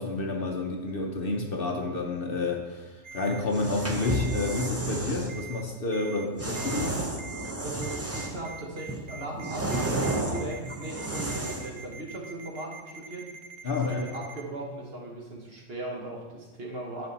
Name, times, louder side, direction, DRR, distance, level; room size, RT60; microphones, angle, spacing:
voice 1, 0.0-7.0 13.6-14.0, left 3 dB, 50° left, 1 dB, 0.9 m, -30 dB
Ringtone, 3.0-3.4 4.0-4.7 5.3-5.6 5.9-6.3 6.6-6.9 7.2-7.5 7.8-14.4, right 6 dB, 75° right, 1.1 m, -44 dB
sound 1, 3.5-5.3 6.4-8.5 8.9-11.8, right 1 dB, 15° right, 0.5 m, -32 dB
voice 2, 7.6-13.3 13.8-17.1, right 2 dB, 50° right, -1 dB, 1.4 m, -38 dB
10.5 x 4.3 x 4.1 m, 1.3 s
omnidirectional pair, 1.4 m